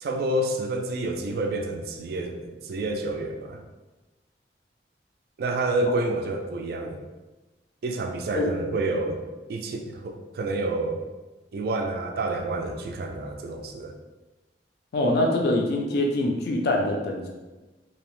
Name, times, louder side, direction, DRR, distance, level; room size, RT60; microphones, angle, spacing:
voice 1, 0.0-3.6 5.4-7.0 7.8-9.2 9.5-11.0 11.5-13.9, right 2 dB, 60° right, 4 dB, 0.3 m, -29 dB
voice 2, 14.9-17.3, left 1 dB, 60° left, 1 dB, 0.4 m, -24 dB
2.7 x 2.0 x 3.0 m, 1.2 s
head